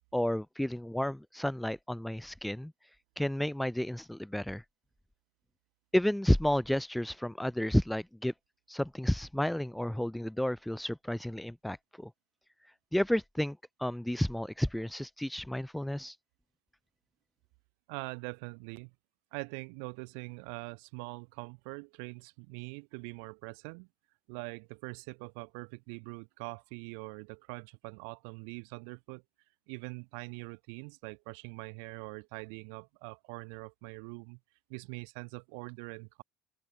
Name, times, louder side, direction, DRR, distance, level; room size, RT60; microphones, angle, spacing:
voice 1, 0.1-2.7 3.2-4.6 5.9-8.3 8.7-12.1 12.9-16.1, left 1 dB, ahead, 0.6 m, -31 dB
voice 2, 17.9-18.9 19.3-23.9 24.3-29.2 29.7-34.4 34.7-36.2, right 40 dB or more, 90° right, 1.6 m, -43 dB
open air
cardioid pair, 170°, 0 cm